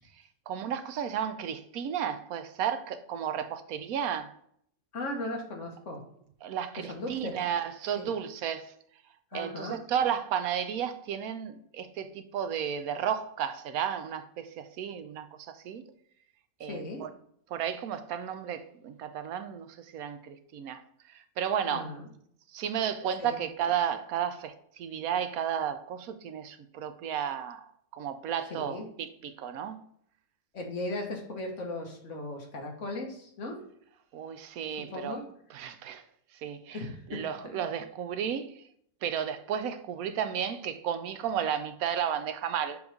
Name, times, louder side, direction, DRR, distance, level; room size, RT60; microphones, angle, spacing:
voice 1, 0.5-4.3 6.4-8.7 9.3-15.8 16.6-17.1 17.5-20.8 21.1-21.9 22.5-27.7 27.9-29.8 34.1-35.2 35.5-36.0 36.4-36.8 37.1-38.6 39.0-42.8, right 8 dB, 80° right, 1.1 m, -33 dB
voice 2, 4.9-6.0 6.8-7.3 7.9-8.1 9.3-9.8 16.6-17.0 21.7-22.0 23.2-23.4 28.5-28.8 30.5-33.6 34.9-35.2 36.7-37.2, left 2 dB, 60° left, 1.5 m, -37 dB
7.0 x 3.2 x 4.8 m
omnidirectional pair, 1.5 m